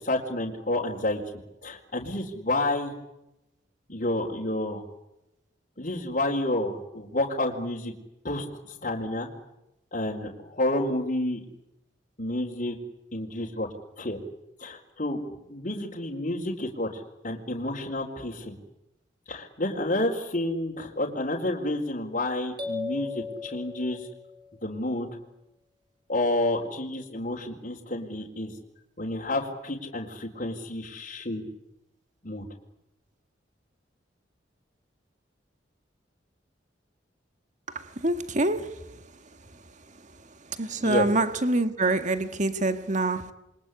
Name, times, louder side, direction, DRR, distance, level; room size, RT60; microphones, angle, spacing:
voice 1, 0.0-1.2 1.6-2.9 3.9-4.8 5.8-7.9 8.2-9.3 9.9-11.4 12.2-12.8 13.1-13.7 14.0-14.2 14.6-18.5 19.3-24.1 24.6-25.1 26.1-28.5 29.0-31.4 32.2-32.4 40.8-41.1, left 1 dB, 45° left, 4.4 m, -30 dB
sound 1, 22.6-24.5, left 4 dB, 25° right, 4.4 m, -36 dB
voice 2, 37.8-38.8 40.6-43.3, right 2 dB, 40° right, 1.9 m, -26 dB
28.5 x 24.5 x 8.5 m
head